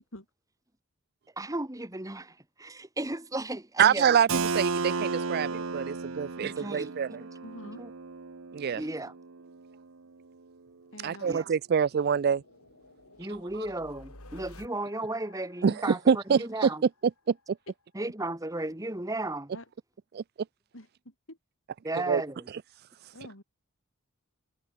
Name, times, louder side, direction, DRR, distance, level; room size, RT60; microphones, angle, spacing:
voice 1, 1.4-4.2 6.4-6.9 7.2-7.3 7.6-7.9 8.8-9.1 11.2-11.4 13.2-16.8 17.9-19.5 21.8-22.5, right 2 dB, 15° right, 1.7 m, -35 dB
voice 2, 3.8-7.1 8.5-8.8 11.0-12.4 13.6-13.7 15.6-16.7 17.3-17.4 20.1-20.2 22.1-22.2, right 7 dB, 45° right, 0.3 m, -25 dB
Keyboard (musical), 4.3-9.8, right 4 dB, 65° right, 0.9 m, -34 dB
voice 3, 7.4-7.8 10.9-11.3 19.5-19.7 20.7-21.4 23.1-23.4, left 1 dB, 60° left, 6.5 m, -46 dB
sound 1, 10.7-17.5, left 2 dB, 85° left, 6.9 m, -54 dB
head